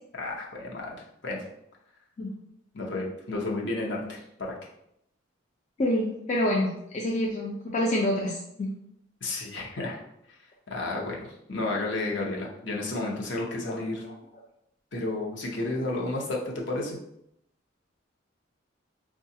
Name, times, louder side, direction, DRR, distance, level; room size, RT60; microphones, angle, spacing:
voice 1, 0.1-1.0 1.2-1.4 2.7-4.5 9.2-10.0 10.7-11.2 11.5-14.0 14.9-16.4 16.7-17.0, left 2 dB, 65° left, -2 dB, 0.8 m, -31 dB
voice 2, 5.8-8.7 13.7-13.8 14.0-14.1, left 1 dB, 35° left, -2 dB, 0.4 m, -27 dB
4.6 x 2.3 x 2.7 m, 0.77 s
head